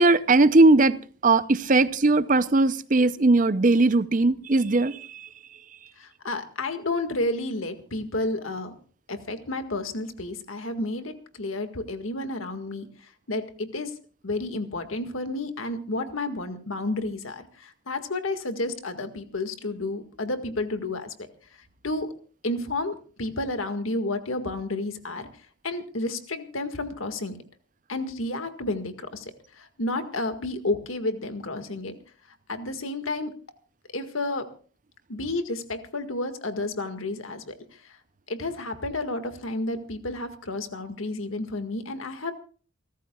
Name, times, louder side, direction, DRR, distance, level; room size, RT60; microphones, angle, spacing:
voice 1, 0.0-5.3, right 2 dB, 40° right, 15 dB, 0.6 m, -19 dB
voice 2, 6.0-8.8 9.1-13.9 14.2-21.3 21.8-22.1 22.4-25.3 25.6-27.4 27.9-31.9 32.5-33.3 33.9-34.5 35.1-38.0 38.3-42.3, left 2 dB, 90° left, 7 dB, 1.9 m, -31 dB
29.0 x 14.0 x 2.4 m, 0.40 s
head